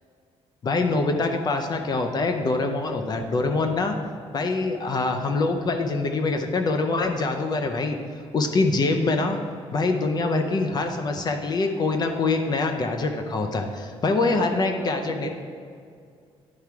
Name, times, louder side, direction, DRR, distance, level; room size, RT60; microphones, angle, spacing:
voice 1, 0.6-4.0 4.3-8.0 8.3-9.4 9.7-15.3, left 3 dB, 40° left, 4 dB, 0.6 m, -24 dB
voice 2, 14.3-15.3, right 2 dB, 25° right, -3 dB, 1.0 m, -37 dB
10.5 x 4.7 x 4.7 m, 2.2 s
cardioid pair, 140°, 11 cm